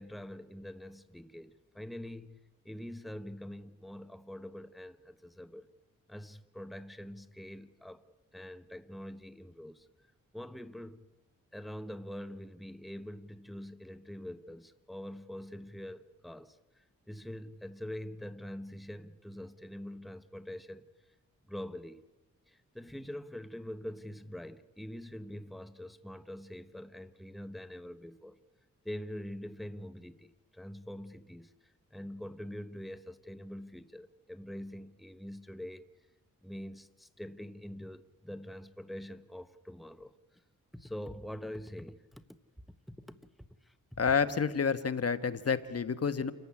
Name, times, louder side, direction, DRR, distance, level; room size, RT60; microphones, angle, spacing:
voice 1, 0.0-5.7 6.1-8.0 8.3-9.9 10.3-11.0 11.5-20.9 21.5-22.0 22.5-28.4 28.8-35.8 36.4-40.4 40.7-42.2 43.0-44.0, left 1 dB, ahead, 1.2 m, -44 dB
voice 2, 44.0-46.3, left 6 dB, 50° left, 1.4 m, -29 dB
28.5 x 15.0 x 9.7 m
cardioid pair, 70°, 32 cm